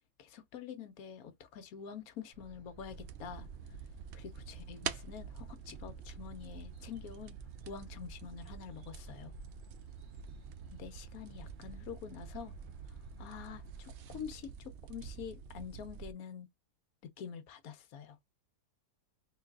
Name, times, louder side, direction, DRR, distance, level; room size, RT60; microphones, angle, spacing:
voice 1, 0.2-3.5 4.1-7.4 7.7-9.3 10.8-12.5 13.2-16.5 17.2-18.2, left 7 dB, 70° left, 1.1 m, -46 dB
sound 1, 2.3-14.2, right 1 dB, 40° right, 0.9 m, -55 dB
sound 2, 2.8-16.1, right 8 dB, 75° right, 0.6 m, -47 dB
3.9 x 3.2 x 2.3 m
omnidirectional pair, 1.7 m